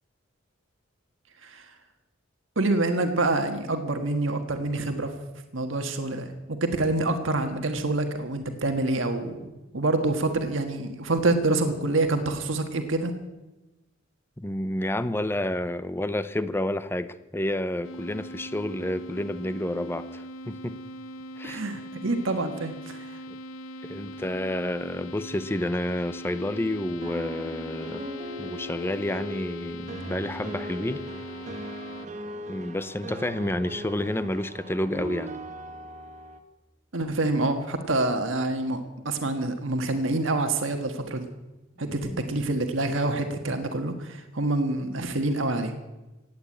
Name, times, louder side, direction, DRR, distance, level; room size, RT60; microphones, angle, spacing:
voice 1, 2.5-5.1 5.5-9.5 9.7-13.1 21.4-23.0 36.9-41.3 41.8-45.7, right 2 dB, 75° right, 6 dB, 1.5 m, -26 dB
voice 2, 14.4-20.8 21.4-21.6 23.3-23.4 23.8-28.0 28.4-31.0 32.5-35.3 41.9-42.2, left 1 dB, 10° left, 13 dB, 0.6 m, -30 dB
sound 1, 17.8-32.1, equal, 85° left, 0.9 m, -41 dB
sound 2, 26.3-36.4, equal, 35° right, 1.3 m, -39 dB
17.0 x 9.4 x 8.5 m, 1.0 s
head